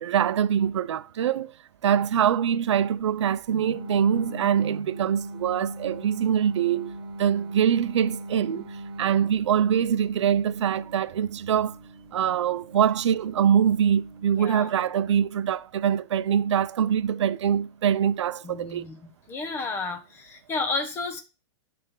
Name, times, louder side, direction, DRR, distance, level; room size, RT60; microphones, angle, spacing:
voice 1, 0.0-1.5 1.8-6.9 7.2-8.7 9.0-11.7 12.1-18.8, right 9 dB, 80° right, 0.5 m, -24 dB
sound 1, 3.5-14.3, right 2 dB, 60° right, 1.0 m, -41 dB
voice 2, 14.4-14.7 18.4-21.2, left 3 dB, 15° left, 1.0 m, -32 dB
10.0 x 3.4 x 3.7 m
hypercardioid pair, 155°, 15 cm